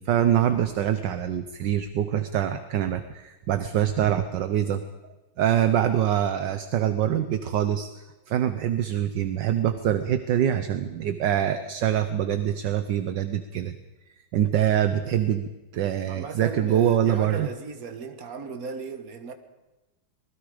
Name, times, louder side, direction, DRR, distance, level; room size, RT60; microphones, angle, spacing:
voice 1, 0.0-13.7 14.3-17.5, right 10 dB, 70° right, 1.4 m, -25 dB
voice 2, 16.1-19.3, right 5 dB, 50° right, 1.9 m, -36 dB
26.0 x 20.0 x 5.0 m
omnidirectional pair, 2.1 m